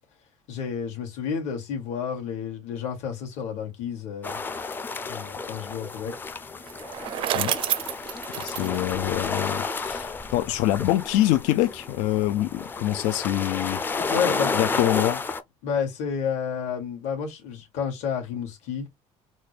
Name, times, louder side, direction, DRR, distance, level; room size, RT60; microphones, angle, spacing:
voice 1, 0.5-4.4 5.1-6.1 8.6-8.8 14.1-14.5 15.6-18.9, left 7 dB, 75° left, 2.0 m, -30 dB
sound 1, 4.2-15.4, left 4 dB, 15° left, 0.4 m, -31 dB
Bicycle, 6.6-9.8, right 11 dB, 45° right, 0.4 m, -30 dB
voice 2, 8.4-13.8 14.3-15.2, left 15 dB, 90° left, 0.4 m, -25 dB
4.1 x 2.2 x 3.2 m
cardioid pair, 155°, 12 cm